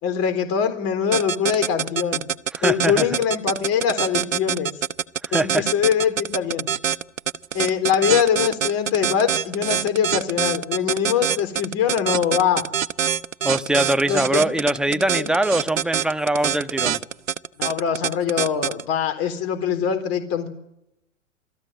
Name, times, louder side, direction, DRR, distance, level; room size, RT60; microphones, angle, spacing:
voice 1, 0.0-2.2 2.6-4.7 5.3-6.7 7.5-12.6 14.1-14.5 14.9-15.3 17.6-20.5, left 8 dB, 40° left, 4.0 m, -23 dB
sound 1, 1.1-18.8, right 8 dB, 85° right, 1.0 m, -24 dB
voice 2, 2.5-3.1 5.2-5.6 13.4-17.0, right 1 dB, ahead, 1.2 m, -22 dB
27.5 x 17.5 x 9.2 m
hypercardioid pair, 105°, 39 cm